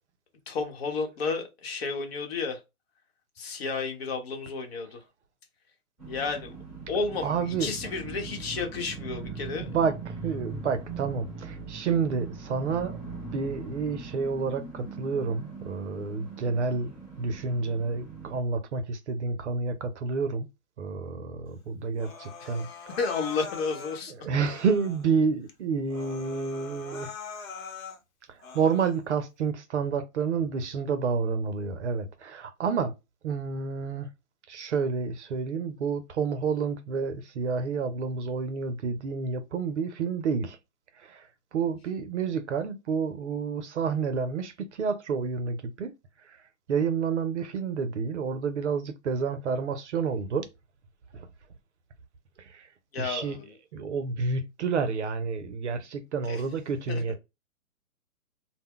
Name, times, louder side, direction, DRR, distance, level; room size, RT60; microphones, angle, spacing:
voice 1, 0.5-2.6 3.4-5.0 6.1-6.5 6.9-9.7 22.4-24.3 52.9-53.5 56.3-56.4 56.9-57.0, left 4 dB, 45° left, 0.9 m, -32 dB
sound 1, 6.0-18.4, right 4 dB, ahead, 1.1 m, -41 dB
voice 2, 7.2-7.7 9.6-13.0 13.3-20.5 20.8-22.7 24.1-27.1 28.3-32.9 33.2-34.1 34.5-40.6 41.0-41.3 41.5-45.9 46.3-46.4 46.7-50.5 51.1-51.3 52.4-52.7 53.0-53.4 53.7-57.2, right 5 dB, 55° right, 0.5 m, -29 dB
Human voice, 22.0-24.0 24.4-25.1 25.5-25.6 25.9-28.0 28.4-29.0, left 6 dB, 70° left, 0.8 m, -42 dB
2.2 x 2.1 x 3.5 m
hypercardioid pair, 145°, 44 cm